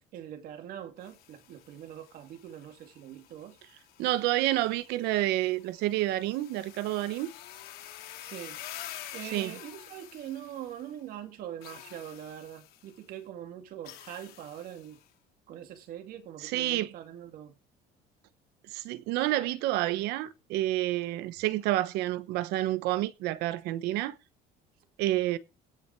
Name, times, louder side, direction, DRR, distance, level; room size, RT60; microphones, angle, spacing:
voice 1, 0.0-3.6 8.2-8.6 9.1-15.0 15.5-17.5, right 10 dB, 60° right, 2.5 m, -43 dB
sound 1, 1.0-11.0 11.6-13.0 13.8-15.1, left 12 dB, 65° left, 2.4 m, -48 dB
voice 2, 4.0-7.3 9.3-9.5 16.4-16.9 18.7-24.2 25.0-25.4, right 15 dB, 80° right, 1.0 m, -29 dB
17.0 x 6.2 x 4.6 m
cardioid pair, 135°, 17 cm